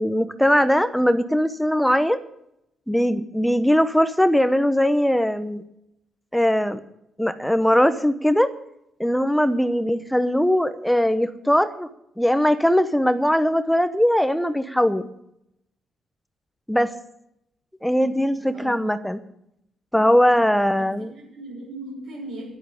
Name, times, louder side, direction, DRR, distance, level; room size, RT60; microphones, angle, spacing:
voice 1, 0.0-2.2 2.9-5.6 6.3-6.8 7.2-8.5 9.0-11.9 12.2-15.1 16.7-16.9 17.8-19.2 19.9-21.1, equal, ahead, 12 dB, 0.9 m, -20 dB
voice 2, 18.0-19.0 20.8-22.6, right 1 dB, 75° right, -4 dB, 6.9 m, -39 dB
11.5 x 8.6 x 9.7 m, 0.79 s
cardioid pair, 90°, 0 cm